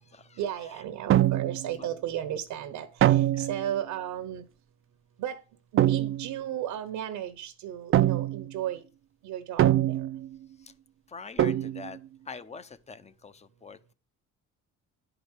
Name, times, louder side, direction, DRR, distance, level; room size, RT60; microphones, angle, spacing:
voice 1, 0.4-4.4 5.2-5.4 5.7-8.8 9.2-10.1, right 11 dB, 80° right, 1.1 m, -34 dB
sound 1, 1.1-1.7 3.0-3.7 5.8-6.3 7.9-8.5 9.6-10.4 11.4-12.0, right 13 dB, 40° right, 0.5 m, -23 dB
voice 2, 11.1-12.0 12.3-13.9, left 5 dB, 20° left, 0.8 m, -44 dB
10.5 x 5.1 x 6.5 m
cardioid pair, 110°, 32 cm